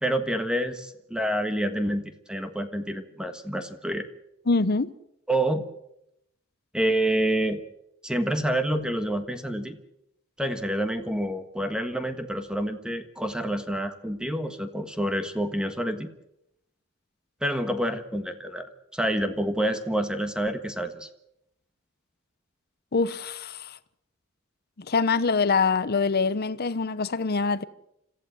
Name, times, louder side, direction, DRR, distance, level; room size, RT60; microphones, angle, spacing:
voice 1, 0.0-4.0 5.3-5.7 6.7-7.6 8.0-9.8 10.4-16.1 17.4-21.1, right 1 dB, 5° right, 1.5 m, -28 dB
voice 2, 4.5-4.9 22.9-23.8 24.8-27.6, left 4 dB, 50° left, 0.8 m, -24 dB
26.5 x 15.0 x 7.8 m
head